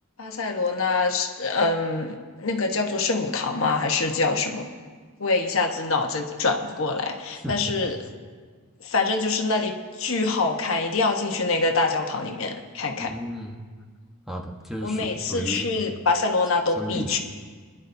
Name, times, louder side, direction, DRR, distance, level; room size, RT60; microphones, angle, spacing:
voice 1, 0.2-4.7 5.2-8.0 8.8-13.1 14.8-17.2, left 3 dB, 65° left, 3 dB, 1.2 m, -25 dB
voice 2, 13.0-13.6 14.3-15.7 16.8-17.2, equal, ahead, -1 dB, 1.1 m, -33 dB
29.0 x 11.0 x 2.7 m, 1.5 s
head